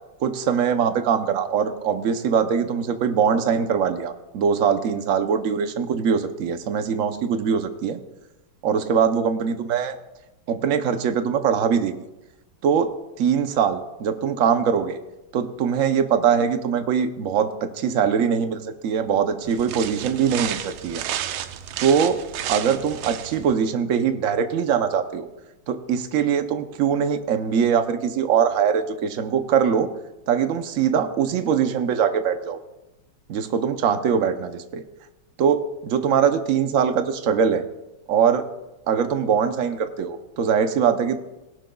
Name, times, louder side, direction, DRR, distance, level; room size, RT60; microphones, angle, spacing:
voice 1, 0.2-8.0 8.6-9.9 10.5-11.9 12.6-15.0 15.3-21.0 21.8-22.2 22.5-25.3 25.7-29.9 30.3-32.6 33.3-34.8 35.4-37.6 38.1-38.4 38.9-41.1, right 7 dB, 65° right, 8 dB, 0.8 m, -22 dB
sound 1, 19.5-23.5, right 10 dB, 80° right, 1.5 m, -32 dB
17.5 x 11.5 x 2.3 m, 0.99 s
omnidirectional pair, 2.3 m